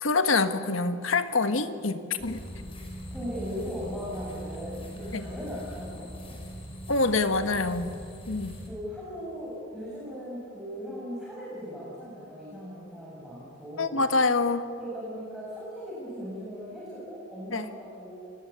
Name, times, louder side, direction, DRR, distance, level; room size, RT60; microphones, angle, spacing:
voice 1, 0.0-2.4 5.1-5.3 6.9-7.9 8.3-8.6 13.8-14.6 17.5-17.7, left 3 dB, 80° left, 9 dB, 1.5 m, -26 dB
sound 1, 2.2-8.7, equal, 30° left, 4.9 m, -41 dB
voice 2, 3.1-6.4 8.6-14.0 14.8-18.1, equal, ahead, -8 dB, 6.7 m, -38 dB
27.5 x 20.5 x 8.4 m, 2.5 s
head